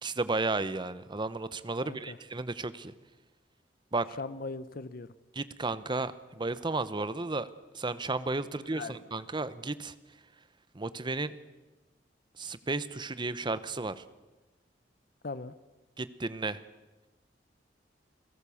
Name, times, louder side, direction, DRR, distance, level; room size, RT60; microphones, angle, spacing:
voice 1, 0.0-2.9 3.9-4.1 5.3-9.9 10.7-11.3 12.4-14.0 16.0-16.6, right 3 dB, 25° right, 14 dB, 0.9 m, -33 dB
voice 2, 1.8-2.2 4.2-5.1 8.7-9.0 15.2-15.5, left 3 dB, 55° left, 15 dB, 0.8 m, -39 dB
29.5 x 17.0 x 7.1 m, 1.1 s
head